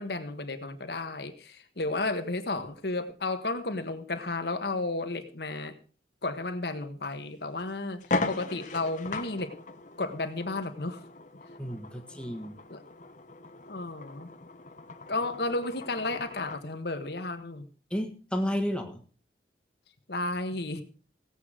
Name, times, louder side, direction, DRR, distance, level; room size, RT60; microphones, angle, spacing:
voice 1, 0.0-5.8 6.2-9.5 10.0-11.0 12.7-12.8 13.7-14.3 15.1-17.7 20.1-20.8, left 2 dB, 65° left, 1.4 m, -33 dB
sound 1, 7.0-7.1 7.6-7.7 8.0-16.7, left 3 dB, 45° left, 1.0 m, -38 dB
voice 2, 11.6-12.5 17.9-19.0, equal, 5° left, 1.5 m, -32 dB
17.0 x 8.1 x 5.0 m
head